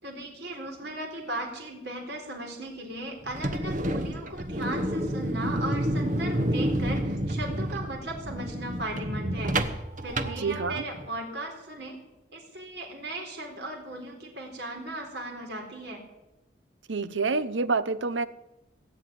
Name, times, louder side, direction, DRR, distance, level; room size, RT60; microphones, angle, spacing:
voice 1, 0.0-12.0 12.3-16.0, right 1 dB, 65° right, 2 dB, 4.0 m, -37 dB
sound 1, 3.2-11.1, right 1 dB, 45° right, 1.1 m, -29 dB
voice 2, 10.4-10.8 16.9-18.3, right 4 dB, 90° right, 15 dB, 0.8 m, -27 dB
17.5 x 8.0 x 9.4 m, 0.96 s
head